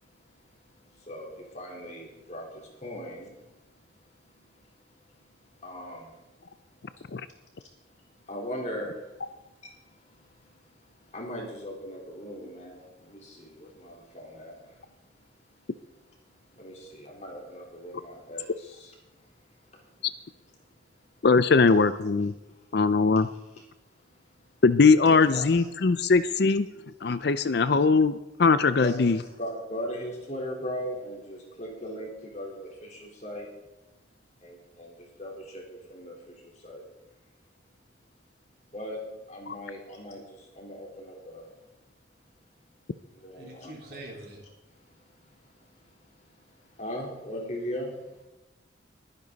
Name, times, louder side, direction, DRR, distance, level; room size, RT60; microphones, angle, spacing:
voice 1, 0.6-3.8 4.3-4.4 5.2-6.2 6.9-7.2 7.8-15.0 15.4-15.5 16.3-19.1 19.4-19.9 24.1-24.6 25.0-25.7 28.8-33.5 34.4-36.9 38.7-41.6 43.1-44.0 44.7-48.2, equal, 35° left, -2 dB, 4.0 m, -40 dB
voice 2, 21.2-22.3 22.7-23.3 24.6-26.7 27.0-29.2 39.5-39.6, left 4 dB, 55° left, 13 dB, 0.5 m, -21 dB
voice 3, 43.4-44.4, right 1 dB, 55° right, -2 dB, 4.2 m, -44 dB
22.0 x 9.9 x 4.1 m, 1.0 s
head